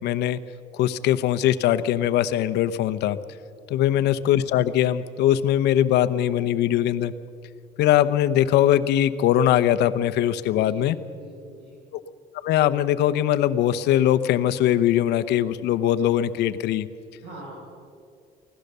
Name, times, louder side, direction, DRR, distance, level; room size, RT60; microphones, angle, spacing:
voice 1, 0.0-0.4 0.7-3.2 3.7-7.1 7.8-11.0 11.9-12.0 12.4-16.9, left 11 dB, 80° left, 13 dB, 0.9 m, -21 dB
voice 2, 10.5-11.8 17.2-17.5, right 1 dB, 75° right, -3 dB, 6.6 m, -44 dB
24.5 x 17.0 x 6.8 m, 2.2 s
cardioid pair, 110°, 17 cm